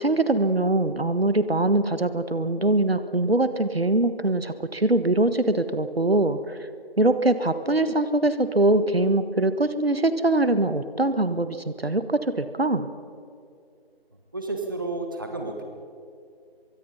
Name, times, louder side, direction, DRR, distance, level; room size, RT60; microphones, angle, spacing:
voice 1, 0.0-6.6 7.0-12.9, right 2 dB, 70° right, 11 dB, 1.5 m, -23 dB
voice 2, 14.3-15.6, right 2 dB, 20° right, 3 dB, 1.3 m, -31 dB
23.5 x 23.0 x 5.5 m, 2.4 s
figure-of-eight pair, 165°, 31 cm